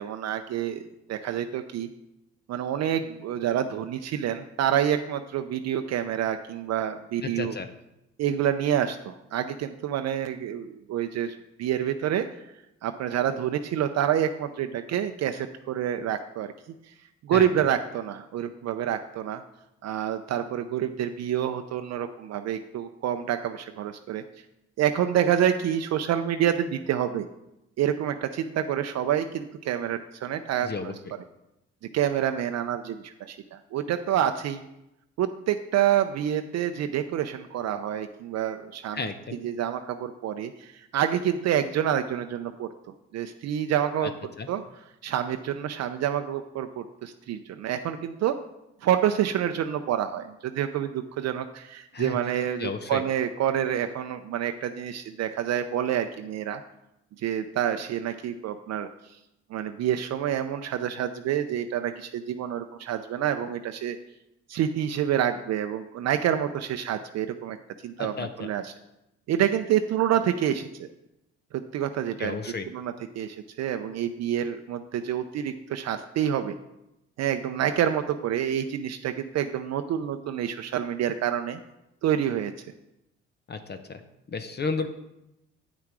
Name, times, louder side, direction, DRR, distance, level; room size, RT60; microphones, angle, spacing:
voice 1, 0.0-1.9 2.5-7.6 8.2-12.3 12.8-16.5 17.2-19.4 19.8-24.2 24.8-27.3 27.8-30.9 31.9-34.6 35.2-39.1 39.4-42.7 43.1-44.1 44.5-44.6 45.0-48.4 48.8-56.6 57.2-58.9 59.5-64.0 64.5-67.6 67.8-68.7 69.3-70.9 71.5-72.4 72.7-76.5 77.2-81.6 82.0-82.5, right 10 dB, 60° right, 7 dB, 0.6 m, -27 dB
voice 2, 7.2-7.7 17.3-17.5 30.6-30.9 38.9-39.4 44.0-44.1 44.4-44.5 51.9-52.2 52.6-53.0 68.0-68.5 72.2-72.7 83.5-84.0 84.3-84.9, left 4 dB, 35° left, 8 dB, 0.7 m, -32 dB
8.6 x 5.9 x 4.7 m, 0.89 s
supercardioid pair, 65°, 30 cm